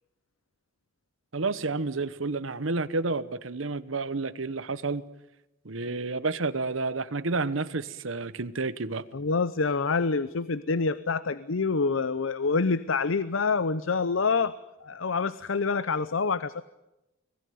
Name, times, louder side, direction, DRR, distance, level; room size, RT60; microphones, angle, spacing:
voice 1, 1.3-5.0 5.6-9.0, right 3 dB, 80° right, 15 dB, 1.1 m, -30 dB
voice 2, 9.1-16.6, left 4 dB, 80° left, 16 dB, 0.8 m, -27 dB
25.0 x 18.0 x 9.4 m, 0.94 s
head